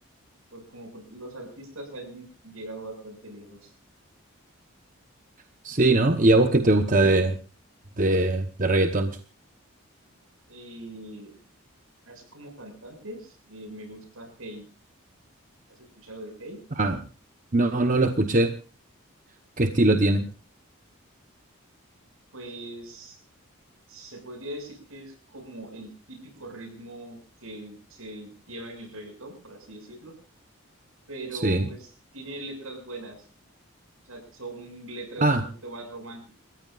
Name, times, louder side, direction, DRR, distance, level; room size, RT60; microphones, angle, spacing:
voice 1, 0.5-3.7 10.5-11.3 12.0-14.6 15.8-16.6 22.3-23.2 23.9-30.1 31.1-33.3 34.0-36.3, right 1 dB, 75° right, 5 dB, 6.7 m, -41 dB
voice 2, 5.6-7.4 8.0-9.1 16.8-17.0 17.5-18.5 19.6-20.3 31.4-31.7 35.2-35.4, right 2 dB, 40° right, 7 dB, 1.0 m, -21 dB
30.0 x 15.0 x 2.5 m, 0.34 s
head